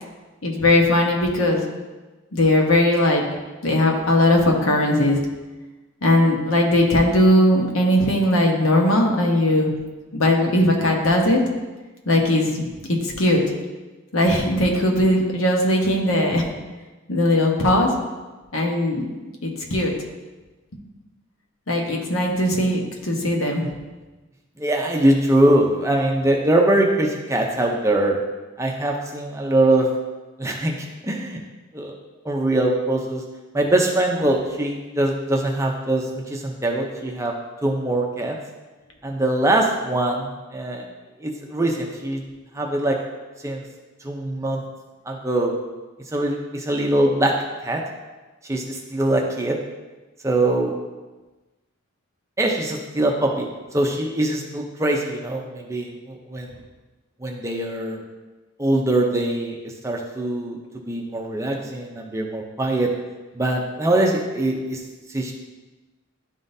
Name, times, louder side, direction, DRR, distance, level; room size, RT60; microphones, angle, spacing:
voice 1, 0.4-1.6 2.3-3.2 3.6-5.2 6.0-9.7 10.1-11.4 12.0-13.4 14.1-16.4 17.1-17.9 18.5-19.0 19.4-19.9 21.7-23.7, left 1 dB, 75° left, 0 dB, 1.1 m, -19 dB
voice 2, 24.6-28.2 28.6-29.9 30.4-31.4 31.7-32.0 32.2-33.2 33.5-37.3 37.6-38.4 39.0-40.9 41.2-42.2 42.5-43.0 43.4-43.6 44.0-44.6 45.1-45.5 46.1-47.3 47.6-47.8 48.4-49.6 50.2-50.8 52.4-53.5 53.7-56.6 57.2-58.0 58.6-60.6 60.9-62.9 63.3-64.8 65.1-65.3, right 1 dB, 15° right, 0 dB, 0.5 m, -22 dB
11.0 x 3.7 x 2.7 m, 1.2 s
head